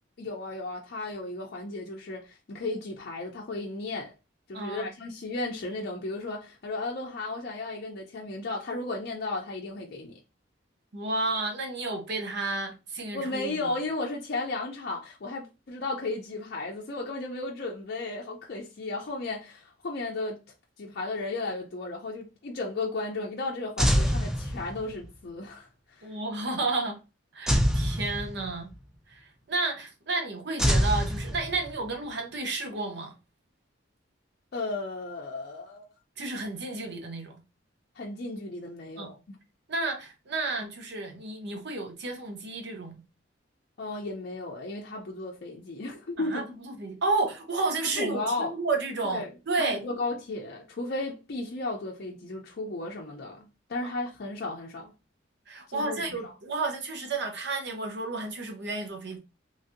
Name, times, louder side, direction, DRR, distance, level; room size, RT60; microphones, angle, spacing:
voice 1, 0.2-4.1 4.5-10.2 13.1-20.4 20.8-26.2 34.5-35.9 37.9-39.4 43.8-46.5 47.9-48.5 49.0-49.3 49.6-54.9 55.7-56.3, left 2 dB, 55° left, 0.5 m, -34 dB
voice 2, 4.5-4.9 10.9-13.7 26.0-27.0 27.3-28.7 29.1-33.1 36.2-37.3 39.0-39.1 39.7-43.0 46.2-46.4 46.8-50.0 55.5-59.2, right 3 dB, 60° right, 0.8 m, -31 dB
sound 1, 23.8-25.0 27.5-28.7 30.6-31.9, equal, 5° right, 0.3 m, -25 dB
3.1 x 2.6 x 2.5 m
head